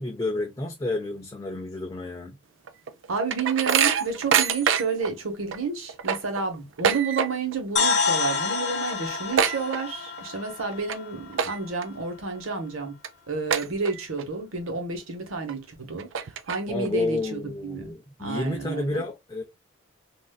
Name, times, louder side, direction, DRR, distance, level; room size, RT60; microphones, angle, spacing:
voice 1, 0.0-2.4 16.7-19.4, left 2 dB, 15° left, 0.4 m, -30 dB
sound 1, 2.7-5.1 5.5-5.6 5.9-7.6 7.9-8.2 8.5-8.6 8.9-10.3 10.7-11.0 11.3-11.8 12.3-12.4 13.0-13.1 13.5-14.2 14.7-14.8 15.5-15.6 16.0-16.9, right 7 dB, 70° right, 0.4 m, -25 dB
voice 2, 3.1-12.9 13.3-19.0, right 4 dB, 85° right, 0.9 m, -30 dB
sound 2, 7.8-11.7, left 5 dB, 55° left, 1.0 m, -28 dB
3.4 x 2.5 x 2.2 m
head